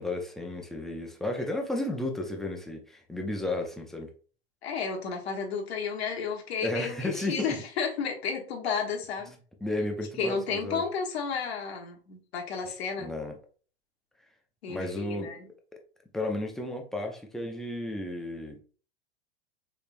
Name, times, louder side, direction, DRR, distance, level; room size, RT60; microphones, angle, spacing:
voice 1, 0.0-4.1 6.6-7.5 9.6-10.8 13.0-13.3 14.7-15.3 16.1-18.6, left 1 dB, ahead, 2 dB, 0.3 m, -33 dB
voice 2, 4.6-9.3 10.2-13.1 14.6-15.5, left 5 dB, 70° left, 1 dB, 1.1 m, -32 dB
3.5 x 3.2 x 2.5 m, 0.39 s
hypercardioid pair, 115°, 32 cm